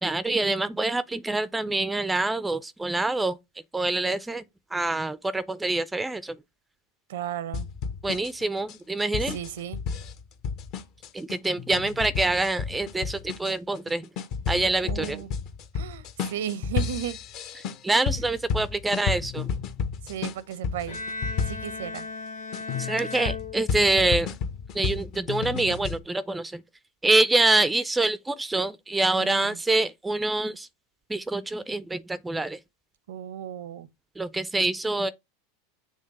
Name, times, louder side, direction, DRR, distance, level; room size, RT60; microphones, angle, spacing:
voice 1, 0.0-3.4 3.7-4.4 4.7-6.4 8.0-9.4 11.1-14.1 14.5-15.2 17.8-19.5 22.8-24.3 24.7-26.6 27.0-30.7 31.1-32.6 34.2-35.1, right 2 dB, 10° right, 0.4 m, -26 dB
voice 2, 7.1-7.7 9.3-9.8 14.8-15.3 15.7-17.2 20.0-21.0 21.4-22.1 29.2-29.6 33.1-33.9, right 9 dB, 80° right, 0.7 m, -34 dB
sound 1, 7.5-22.0 22.5-26.0, left 6 dB, 50° left, 0.9 m, -32 dB
Bowed string instrument, 20.9-24.2, left 3 dB, 85° left, 2.0 m, -36 dB
6.5 x 3.3 x 5.2 m
hypercardioid pair, 115°, 0 cm